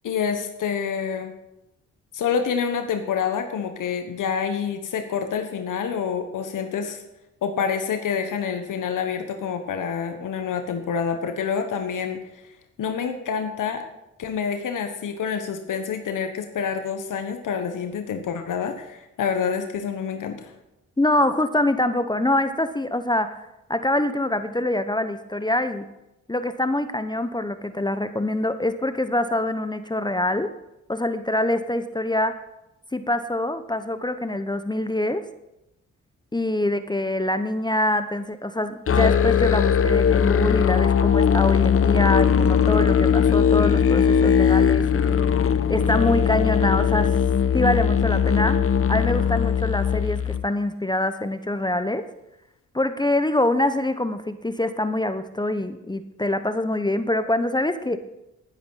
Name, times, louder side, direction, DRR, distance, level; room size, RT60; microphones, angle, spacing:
voice 1, 0.0-1.3 2.1-7.0 7.4-12.2 12.8-13.8 14.2-20.5, left 6 dB, 75° left, 6 dB, 1.3 m, -27 dB
voice 2, 21.0-25.9 26.3-30.5 30.9-32.4 32.9-35.2 36.3-45.1 45.4-47.1 47.5-52.1 52.7-58.0, left 1 dB, 15° left, 11 dB, 0.9 m, -25 dB
Musical instrument, 38.9-50.5, left 7 dB, 45° left, 0.8 m, -19 dB
11.5 x 10.5 x 5.7 m, 0.90 s
cardioid pair, 65°, 32 cm